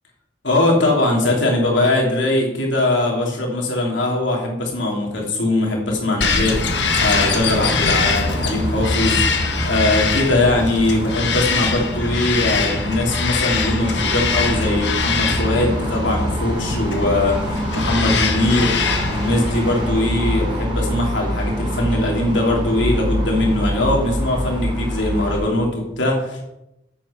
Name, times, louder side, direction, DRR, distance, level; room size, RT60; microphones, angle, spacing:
voice 1, 0.4-9.2 9.6-18.8 19.1-26.4, left 2 dB, 90° left, -1 dB, 3.1 m, -21 dB
Bird vocalization bird call bird song, 6.2-19.9, left 5 dB, 70° left, 1.4 m, -23 dB
sound 1, 6.5-25.4, equal, 25° right, 2.9 m, -26 dB
8.6 x 8.3 x 5.7 m, 0.87 s
head